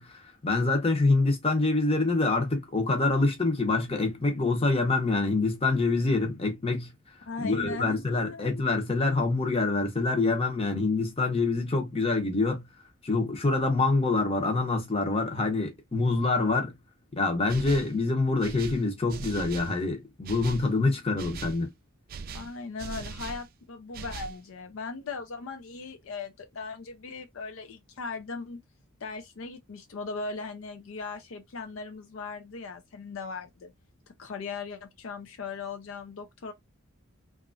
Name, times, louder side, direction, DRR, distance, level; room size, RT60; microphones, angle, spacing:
voice 1, 0.0-6.9 7.4-12.6 13.0-16.7 17.1-21.7, left 3 dB, 25° left, 0.7 m, -26 dB
voice 2, 7.3-8.5 22.3-28.6 29.0-33.7 34.2-36.5, left 4 dB, 65° left, 0.4 m, -38 dB
sound 1, 17.5-18.0 18.4-19.8 20.2-20.7 21.2-21.6 22.1-23.5 23.9-24.4, right 5 dB, 45° right, 0.3 m, -40 dB
2.9 x 2.4 x 2.4 m
head